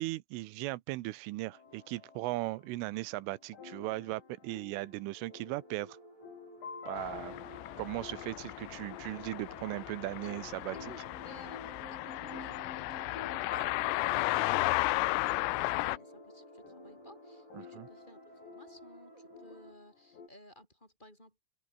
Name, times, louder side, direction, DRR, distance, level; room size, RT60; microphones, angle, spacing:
voice 1, 0.0-6.0 6.9-7.3 7.8-10.8 17.6-17.9, right 19 dB, 80° right, 3.4 m, -38 dB
sound 1, 1.5-20.3, left 5 dB, 60° left, 8.4 m, -51 dB
sound 2, 5.1-19.7, right 2 dB, 15° right, 6.8 m, -54 dB
sound 3, 7.0-16.0, left 20 dB, 90° left, 3.4 m, -34 dB
voice 2, 10.2-21.4, left 1 dB, 10° left, 7.8 m, -57 dB
open air
omnidirectional pair, 5.7 m